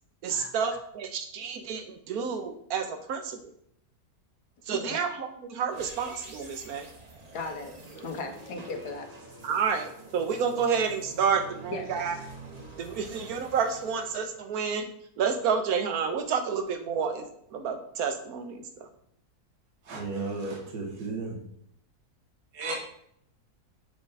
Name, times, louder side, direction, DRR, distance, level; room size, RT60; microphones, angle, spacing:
voice 1, 0.2-3.4 4.7-6.9 9.4-12.1 12.8-14.8 15.2-17.3 17.5-18.6, right 6 dB, 75° right, 1.2 m, -29 dB
sound 1, 5.7-14.9, right 2 dB, 35° right, 0.7 m, -47 dB
voice 2, 7.3-7.7 8.0-9.1 11.7-12.3, left 3 dB, 80° left, 1.4 m, -37 dB
voice 3, 19.8-21.4 22.5-22.7, right 3 dB, 90° right, 1.7 m, -34 dB
6.5 x 3.6 x 4.0 m
omnidirectional pair, 1.6 m